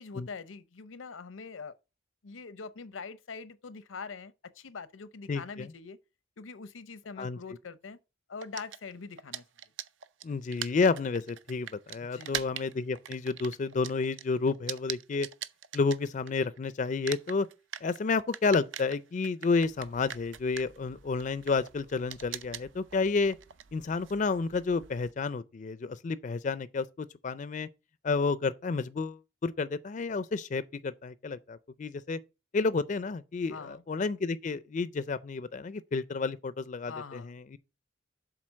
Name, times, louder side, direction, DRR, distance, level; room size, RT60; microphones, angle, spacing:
voice 1, 0.0-1.8 2.2-6.0 6.4-8.0 8.3-9.4 12.0-12.5 33.5-33.8 36.9-37.4, left 5 dB, 85° left, 0.7 m, -43 dB
voice 2, 5.3-5.7 7.2-7.4 10.2-15.3 15.7-17.5 17.8-23.4 23.7-27.7 28.0-32.2 32.5-37.6, left 4 dB, 40° left, 0.4 m, -30 dB
sound 1, 8.4-16.6 16.9-25.1, right 10 dB, 75° right, 0.5 m, -42 dB
7.6 x 4.0 x 6.2 m
head